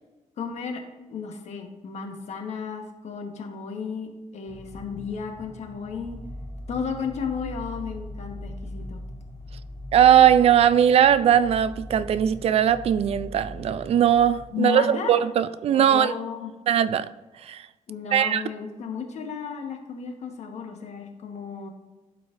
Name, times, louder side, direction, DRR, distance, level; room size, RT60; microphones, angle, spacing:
voice 1, 0.4-0.8 1.1-6.2 6.7-9.0 14.5-15.2 15.7-16.5 17.9-21.7, left 6 dB, 55° left, 1.2 m, -33 dB
sound 1, 4.5-14.4, left 1 dB, 10° right, 1.0 m, -40 dB
voice 2, 9.9-16.1 16.7-17.1 17.5-17.6 18.1-18.4, right 9 dB, 50° right, 0.4 m, -19 dB
12.0 x 4.7 x 2.5 m
cardioid pair, 140°, 13 cm